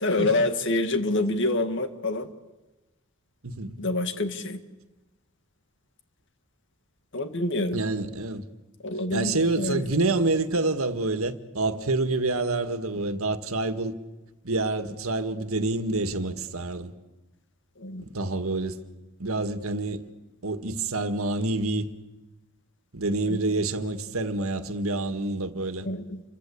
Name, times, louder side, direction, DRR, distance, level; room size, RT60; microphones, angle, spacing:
voice 1, 0.0-2.3 3.8-4.6 7.1-7.8 8.8-9.8 17.8-18.0 23.3-23.4 25.9-26.2, left 2 dB, 60° left, 2.1 m, -27 dB
voice 2, 3.4-3.7 7.7-8.5 9.1-13.9 14.4-16.9 18.0-18.8 19.2-20.1 20.4-21.9 22.9-25.9, right 2 dB, 85° right, 1.8 m, -27 dB
28.5 x 24.0 x 8.5 m
head